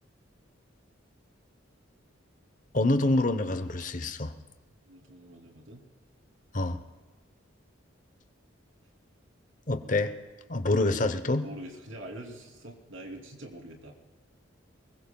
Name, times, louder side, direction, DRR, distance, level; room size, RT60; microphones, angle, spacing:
voice 1, 2.7-4.3 6.5-6.8 9.7-10.1 10.5-11.5, left 2 dB, 40° left, 9 dB, 0.9 m, -26 dB
voice 2, 4.9-5.8 11.3-13.9, right 1 dB, 80° right, 2 dB, 3.1 m, -44 dB
24.0 x 21.5 x 2.3 m, 1.2 s
head